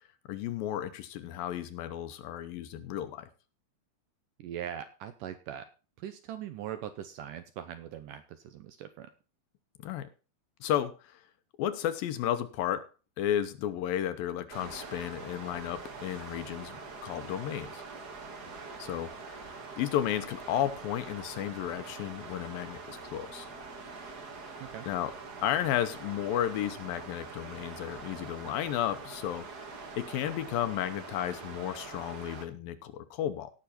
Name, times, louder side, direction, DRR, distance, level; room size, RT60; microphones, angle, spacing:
voice 1, 0.3-3.3 9.8-10.1 10.6-11.2 11.6-12.9 13.2-16.8 17.0-17.8 18.8-19.4 19.8-23.5 24.9-25.1 25.4-29.5 30.0-33.5, left 11 dB, 75° left, 10 dB, 2.5 m, -33 dB
voice 2, 4.4-5.7 6.0-9.1 24.6-24.9, right 10 dB, 75° right, 9 dB, 2.0 m, -41 dB
sound 1, 14.5-32.5, right 4 dB, 45° right, 1.3 m, -44 dB
sound 2, 19.5-29.6, equal, 30° right, 2.0 m, -62 dB
17.5 x 6.1 x 4.2 m, 0.33 s
omnidirectional pair, 4.5 m